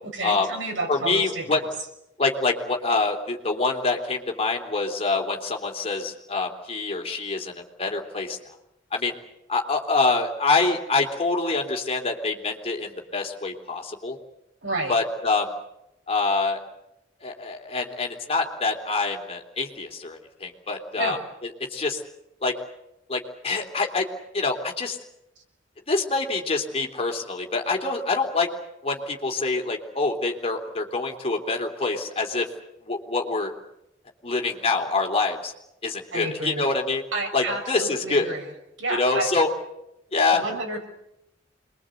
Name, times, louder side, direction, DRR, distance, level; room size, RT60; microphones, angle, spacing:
voice 1, 0.1-1.6 14.6-14.9 21.0-21.2 36.1-36.6 37.1-38.5 38.8-39.3 40.3-40.8, right 2 dB, 85° right, 3 dB, 5.9 m, -30 dB
voice 2, 0.9-1.6 2.2-8.4 8.9-9.1 9.5-14.2 14.9-15.5 16.1-16.6 17.2-21.2 21.7-22.0 22.4-22.5 23.1-24.0 24.3-25.0 25.9-28.5 28.8-32.5 32.9-33.5 34.2-35.5 35.8-37.0 37.3-38.3 39.0-39.5 40.1-40.4, left 3 dB, 35° left, 2 dB, 3.3 m, -25 dB
27.0 x 22.0 x 8.0 m, 0.84 s
head